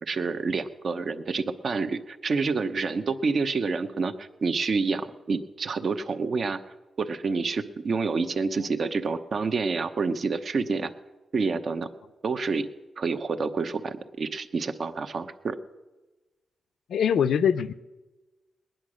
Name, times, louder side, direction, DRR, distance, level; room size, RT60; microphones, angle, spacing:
voice 1, 0.0-6.6 7.0-10.9 11.3-11.9 12.2-12.7 13.0-15.6, right 4 dB, 45° right, 9 dB, 0.9 m, -28 dB
voice 2, 16.9-17.7, left 8 dB, 75° left, 14 dB, 0.6 m, -23 dB
20.0 x 10.5 x 6.3 m, 1.2 s
wide cardioid pair, 140°, 0 cm